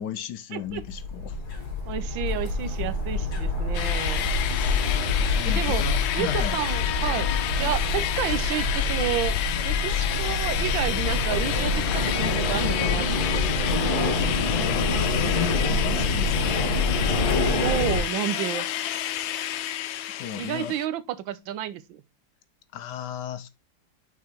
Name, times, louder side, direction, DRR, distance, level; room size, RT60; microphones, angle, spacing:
voice 1, 0.0-1.4 5.1-6.6 14.4-16.8 20.1-20.8 22.7-23.5, left 8 dB, 70° left, 1.2 m, -35 dB
voice 2, 0.5-0.8 1.9-4.3 5.5-5.9 6.1-7.3 7.6-9.4 9.6-13.2 17.6-18.7 20.4-22.0, right 11 dB, 85° right, 1.4 m, -30 dB
sound 1, 0.7-18.0, left 3 dB, 55° left, 2.4 m, -26 dB
sound 2, 3.7-20.9, left 11 dB, 85° left, 1.4 m, -30 dB
6.1 x 4.7 x 4.3 m
omnidirectional pair, 2.1 m